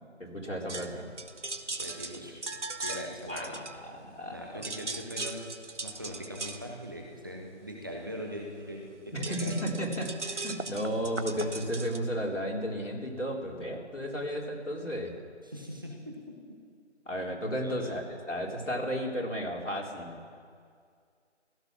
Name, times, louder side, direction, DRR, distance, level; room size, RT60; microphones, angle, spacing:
voice 1, 0.2-1.1 3.3-3.6 3.8-4.7 9.1-15.1 17.1-20.2, equal, 85° left, -2 dB, 4.1 m, -33 dB
sound 1, 0.7-4.3 4.5-12.0, right 3 dB, 75° right, 1.2 m, -39 dB
voice 2, 1.8-2.3 2.8-3.6 4.3-5.4 5.8-9.5 15.4-16.4 17.6-17.9, equal, 20° right, -1 dB, 1.2 m, -41 dB
16.0 x 14.0 x 6.2 m, 2.2 s
figure-of-eight pair, 165°, 35 cm